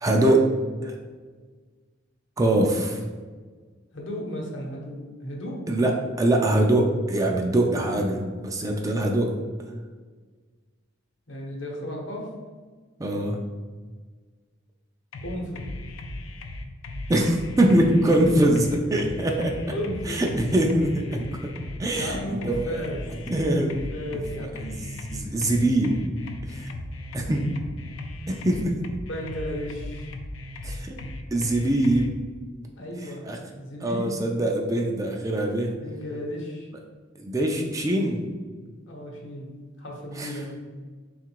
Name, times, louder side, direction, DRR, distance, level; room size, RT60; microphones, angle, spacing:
voice 1, 0.0-0.5 0.8-0.9 2.4-3.0 5.7-9.3 13.0-13.4 17.1-19.6 20.1-21.5 21.8-22.8 23.3-23.8 24.4-26.0 26.4-26.7 27.1-27.4 28.3-28.7 30.6-31.0 31.3-32.2 33.2-33.4 33.8-35.7 37.2-38.2 40.2-40.3, right 1 dB, 15° right, 1 dB, 0.3 m, -23 dB
voice 2, 3.9-5.6 11.3-12.3 15.2-15.7 18.2-18.3 19.7-20.2 21.9-23.0 23.7-24.7 27.2-27.8 29.1-30.1 32.8-34.2 35.8-36.7 38.9-39.5 39.8-40.6, equal, 70° left, -1 dB, 0.9 m, -34 dB
sound 1, 15.1-32.1, left 1 dB, 90° left, 0.4 m, -37 dB
3.7 x 2.4 x 4.4 m, 1.5 s
head